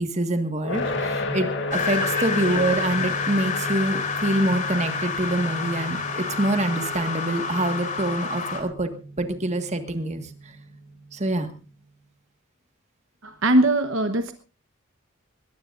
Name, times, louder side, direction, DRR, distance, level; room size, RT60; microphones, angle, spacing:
voice 1, 0.0-8.9 9.2-10.2 11.1-11.5, right 1 dB, 35° right, 7 dB, 1.7 m, -25 dB
sound 1, 0.6-11.6, left 1 dB, 60° left, 2.4 m, -34 dB
sound 2, 1.7-8.6, left 5 dB, 40° left, 3.4 m, -29 dB
voice 2, 13.2-14.3, right 1 dB, 65° right, 8 dB, 1.1 m, -21 dB
21.0 x 18.0 x 2.6 m, 0.35 s
head